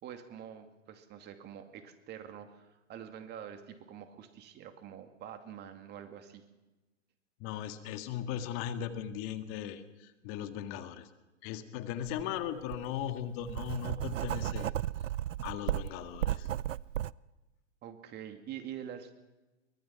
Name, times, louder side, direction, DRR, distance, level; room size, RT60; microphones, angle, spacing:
voice 1, 0.0-6.4 17.8-19.1, right 9 dB, 25° right, 7 dB, 2.4 m, -46 dB
voice 2, 7.4-11.1 11.4-14.7 15.4-16.5, left 10 dB, 35° left, 8 dB, 1.9 m, -38 dB
Writing, 12.0-12.2 12.7-17.1, right 12 dB, 80° right, 0.6 m, -34 dB
23.5 x 20.0 x 5.9 m, 1.1 s
hypercardioid pair, 125°, 38 cm